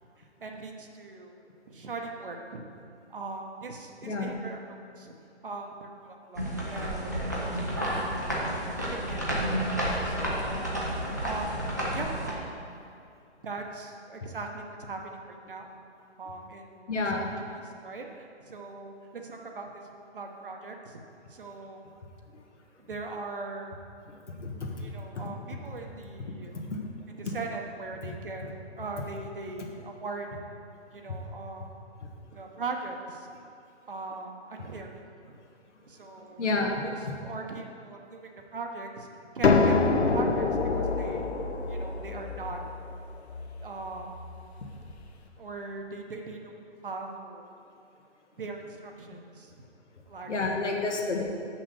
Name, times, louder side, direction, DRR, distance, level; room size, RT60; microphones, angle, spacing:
voice 1, 0.4-1.3 1.7-2.7 3.1-5.1 5.4-8.2 8.9-9.4 10.0-10.7 11.2-12.6 13.4-15.0 15.3-15.7 16.2-17.3 17.6-19.9 20.1-21.0 21.3-21.8 22.8-23.8 24.8-26.6 27.1-28.5 28.7-30.3 30.9-31.7 32.3-33.3 33.9-35.3 35.9-36.4 36.8-39.1 39.3-39.8 40.1-40.4 40.7-41.2 41.7-42.6 43.6-44.3 45.4-46.5 46.8-47.5 48.4-49.5 50.1-50.3 50.6-50.7, right 3 dB, 50° right, 2 dB, 0.9 m, -40 dB
sound 1, 6.4-12.3, equal, 15° right, 0.5 m, -31 dB
voice 2, 16.9-17.3 24.1-25.2 28.4-28.5 36.4-36.7 50.3-51.2, left 3 dB, 85° left, 1 dB, 1.6 m, -30 dB
sound 2, 39.4-45.0, left 4 dB, 65° left, 0.8 m, -27 dB
6.2 x 5.9 x 6.8 m, 2.4 s
hypercardioid pair, 175°, 34 cm